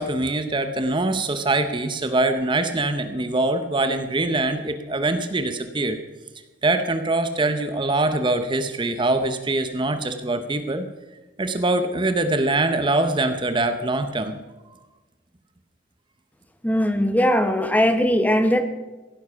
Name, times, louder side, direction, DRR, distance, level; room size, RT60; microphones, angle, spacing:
voice 1, 0.0-6.0 6.6-10.9 11.4-14.3, right 2 dB, 25° right, 9 dB, 0.8 m, -23 dB
voice 2, 16.6-18.6, equal, 10° left, 8 dB, 1.0 m, -19 dB
16.0 x 10.0 x 5.7 m, 1.2 s
head